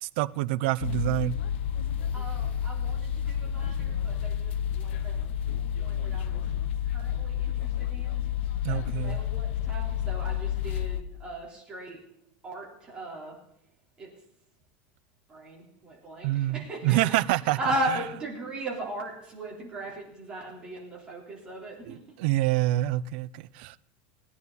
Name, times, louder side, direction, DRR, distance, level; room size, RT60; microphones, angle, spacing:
voice 1, 0.0-1.3 8.6-9.2 16.2-17.6 21.8-23.8, right 16 dB, 60° right, 0.5 m, -27 dB
sound 1, 0.8-11.0, left 9 dB, 80° left, 0.7 m, -30 dB
voice 2, 2.1-5.2 5.6-6.4 6.9-8.3 8.7-12.0 12.4-13.4 14.0-14.1 15.3-17.1 17.4-22.2, right 1 dB, 15° right, 3.6 m, -37 dB
18.5 x 9.6 x 4.1 m
supercardioid pair, 165°, 6 cm